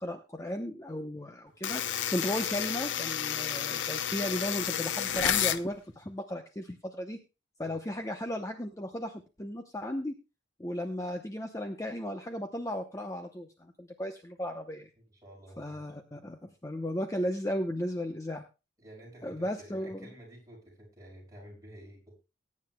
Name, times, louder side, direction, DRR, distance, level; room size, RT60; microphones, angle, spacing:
voice 1, 0.0-7.2 7.6-10.1 10.6-14.9 15.6-18.4 19.2-20.1, equal, 15° left, 5 dB, 0.8 m, -35 dB
sound 1, 1.6-5.6, left 9 dB, 70° left, 0.7 m, -31 dB
voice 2, 1.6-1.9 7.6-7.8 15.1-15.8 18.8-22.2, right 1 dB, 20° right, -2 dB, 5.9 m, -51 dB
20.0 x 9.7 x 2.2 m, 0.29 s
head